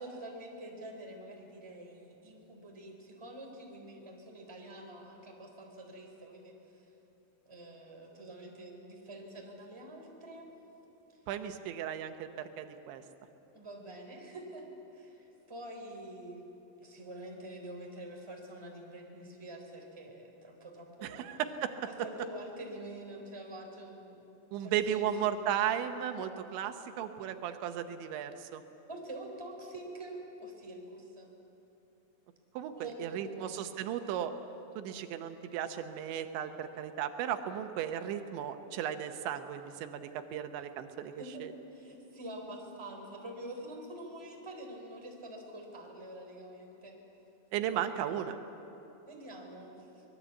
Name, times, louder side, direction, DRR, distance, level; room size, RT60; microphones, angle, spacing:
voice 1, 0.0-6.5 7.4-10.5 13.5-14.7 14.9-16.5 16.8-21.2 21.9-24.2 24.6-25.3 28.9-31.3 32.7-33.5 41.2-41.5 41.7-47.0 49.1-50.0, right 1 dB, 5° right, 1 dB, 3.1 m, -46 dB
voice 2, 11.3-12.3 12.6-13.0 21.0-21.7 24.5-28.6 32.5-34.3 34.8-41.5 47.5-48.4, right 9 dB, 90° right, 7 dB, 3.4 m, -35 dB
25.0 x 21.0 x 8.4 m, 3.0 s
omnidirectional pair, 5.1 m